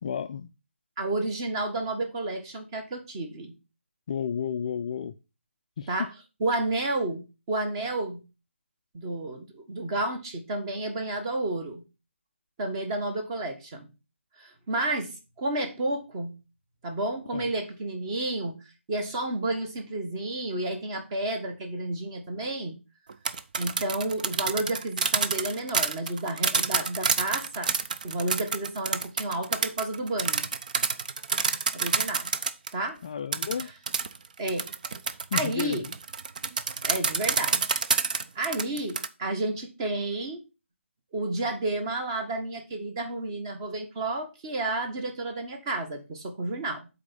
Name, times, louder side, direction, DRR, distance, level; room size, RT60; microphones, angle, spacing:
voice 1, 0.0-0.5 4.1-5.1 5.8-6.1 17.3-17.5 33.0-33.7 35.3-35.8, left 7 dB, 30° left, 0.3 m, -32 dB
voice 2, 1.0-3.5 5.9-6.1 6.4-8.2 8.9-11.8 12.6-13.9 14.4-16.3 16.8-18.5 18.9-22.8 23.6-27.7 28.0-30.5 31.7-32.3 32.7-33.0 34.4-34.7 35.3-35.9 36.8-37.6 38.3-40.4 41.1-46.9, right 2 dB, 20° right, 1.4 m, -31 dB
sound 1, 23.1-32.7 33.3-39.1, right 5 dB, 40° right, 0.5 m, -28 dB
7.4 x 4.2 x 5.4 m
figure-of-eight pair, 155°, 7 cm